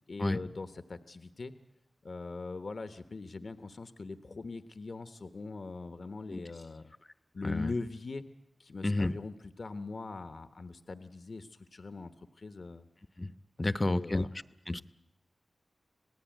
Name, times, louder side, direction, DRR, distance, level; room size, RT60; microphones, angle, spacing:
voice 1, 0.1-1.5 2.0-6.9 7.3-8.2 8.6-12.1 12.4-12.9 13.6-14.3, left 3 dB, 65° left, 10 dB, 1.2 m, -41 dB
voice 2, 13.6-14.3 14.7-14.8, left 2 dB, 35° left, 14 dB, 1.0 m, -30 dB
26.5 x 18.0 x 9.2 m, 0.82 s
cardioid pair, 45°, 0 cm